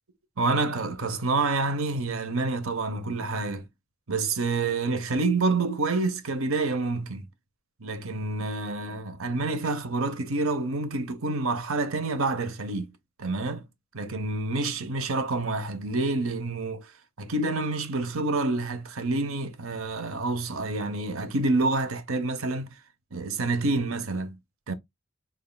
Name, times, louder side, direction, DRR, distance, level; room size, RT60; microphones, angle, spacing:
voice 1, 0.4-3.6 4.1-7.3 7.8-12.9 13.2-13.6 13.9-16.9 17.2-22.7 23.1-24.4 24.7-24.8, right 3 dB, 80° right, 0.9 m, -28 dB
4.1 x 3.6 x 2.2 m
head